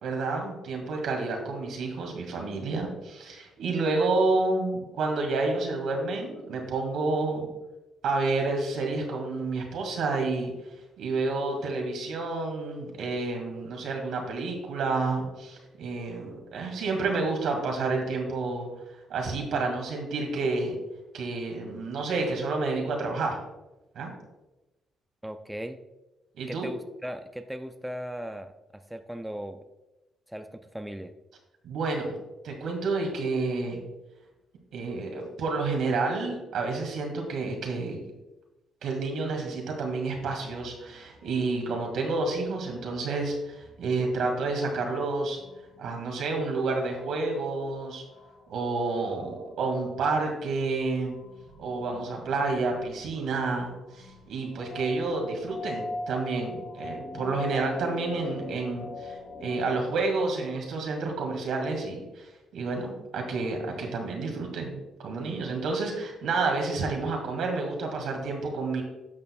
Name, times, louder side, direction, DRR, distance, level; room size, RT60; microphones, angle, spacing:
voice 1, 0.0-7.5 8.0-10.5 11.0-18.7 19.1-20.8 21.1-23.4 24.0-24.1 26.4-26.7 31.6-32.2 32.4-33.8 34.7-38.0 38.8-45.4 45.8-48.0 48.5-51.2 51.6-62.3 62.5-68.8, right 3 dB, 75° right, 2 dB, 1.9 m, -29 dB
voice 2, 25.2-25.8 26.5-29.6 30.3-31.1, equal, 5° right, 8 dB, 0.4 m, -38 dB
sound 1, 40.5-60.0, left 2 dB, 55° left, 1.2 m, -44 dB
10.5 x 6.6 x 2.3 m, 1.0 s
cardioid pair, 90°, 0 cm